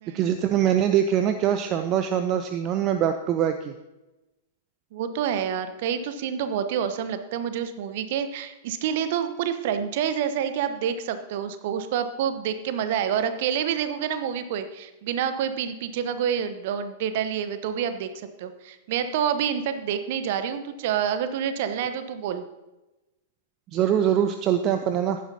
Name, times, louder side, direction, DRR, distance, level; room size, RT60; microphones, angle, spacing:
voice 1, 0.1-3.7 23.7-25.2, right 9 dB, 35° right, 8 dB, 0.6 m, -23 dB
voice 2, 4.9-18.1 18.4-22.4, right 8 dB, 50° right, 10 dB, 1.1 m, -28 dB
15.0 x 11.0 x 2.9 m, 1.0 s
figure-of-eight pair, 100°, 0 cm